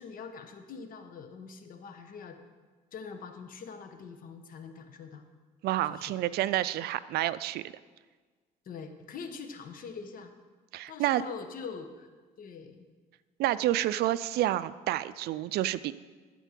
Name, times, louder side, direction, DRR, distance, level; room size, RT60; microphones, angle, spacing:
voice 1, 0.0-2.4 2.9-5.2 5.9-6.2 8.6-10.3 10.9-12.1 12.4-12.9, left 5 dB, 55° left, 7 dB, 1.1 m, -43 dB
voice 2, 5.6-7.6 10.7-11.2 13.4-15.9, right 14 dB, 70° right, 16 dB, 0.4 m, -29 dB
12.5 x 4.5 x 7.4 m, 1.4 s
cardioid pair, 110°, 17 cm